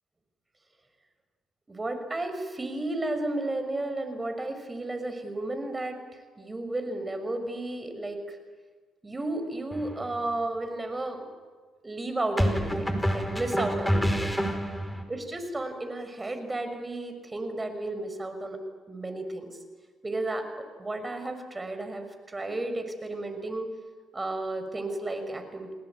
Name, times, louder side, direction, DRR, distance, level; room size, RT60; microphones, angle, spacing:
voice 1, 1.7-6.0 6.4-8.4 9.0-11.2 11.8-14.4 15.1-18.6 18.9-19.6 20.0-20.5 20.8-23.7 24.1-25.7, right 2 dB, 25° right, 7 dB, 6.3 m, -33 dB
sound 1, 9.7-10.0 12.4-15.0, equal, 5° left, 5.2 m, -27 dB
30.0 x 19.0 x 9.5 m, 1.4 s
hypercardioid pair, 55°, 0 cm